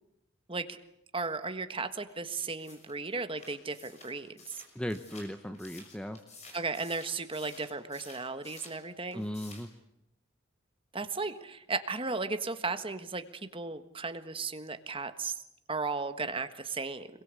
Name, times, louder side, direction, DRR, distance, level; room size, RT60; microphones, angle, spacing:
voice 1, 1.1-4.3 6.5-9.2 10.9-15.3 15.7-17.1, right 4 dB, 25° right, 9 dB, 1.5 m, -35 dB
sound 1, 2.6-8.8 9.1-9.8, left 3 dB, 35° left, 6.3 m, -52 dB
voice 2, 4.7-6.2 9.1-9.7, equal, 5° left, 8 dB, 0.9 m, -37 dB
26.5 x 22.5 x 8.3 m, 0.82 s
head